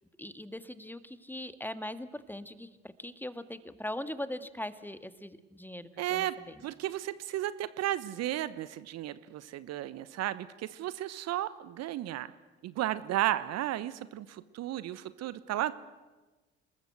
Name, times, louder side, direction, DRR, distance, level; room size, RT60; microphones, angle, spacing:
voice 1, 0.2-6.5, left 1 dB, 5° left, 12 dB, 1.8 m, -40 dB
voice 2, 6.0-6.3 6.6-12.3 12.6-15.7, right 13 dB, 50° right, 16 dB, 1.1 m, -34 dB
28.5 x 20.0 x 8.0 m, 1.2 s
figure-of-eight pair, 55°, 32 cm